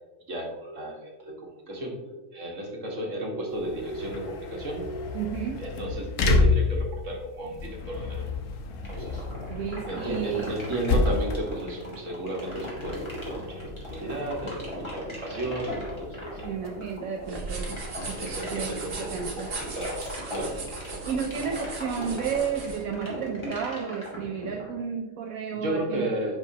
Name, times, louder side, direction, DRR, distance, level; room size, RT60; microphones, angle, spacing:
voice 1, 0.3-5.3 5.6-8.3 8.9-9.2 9.9-16.4 18.2-20.0 20.3-20.5 25.5-26.4, right 1 dB, 65° right, 0 dB, 1.8 m, -34 dB
sound 1, 3.5-18.9, left 3 dB, 70° left, 1.1 m, -31 dB
voice 2, 5.1-5.6 9.5-10.5 16.4-17.8 18.1-19.5 21.0-26.1, right 7 dB, 85° right, 2 dB, 1.1 m, -32 dB
sound 2, 8.8-24.8, left 1 dB, 20° left, 2.0 m, -38 dB
sound 3, 17.2-22.8, right 3 dB, 45° right, 1.3 m, -37 dB
9.8 x 4.8 x 2.8 m, 1.1 s
omnidirectional pair, 1.4 m